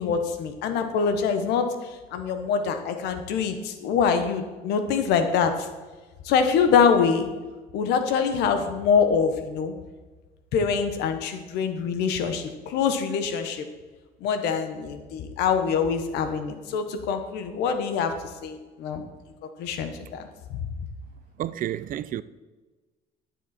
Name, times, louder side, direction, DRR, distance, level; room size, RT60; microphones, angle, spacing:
voice 1, 0.0-5.7 6.2-7.3 7.7-9.7 10.5-13.6 14.2-18.1 18.4-19.0 19.6-20.2 20.5-20.6, left 6 dB, 90° left, 1.3 m, -24 dB
voice 2, 21.4-22.2, right 12 dB, 55° right, 0.5 m, -30 dB
12.0 x 7.2 x 4.4 m
cardioid pair, 110°, 17 cm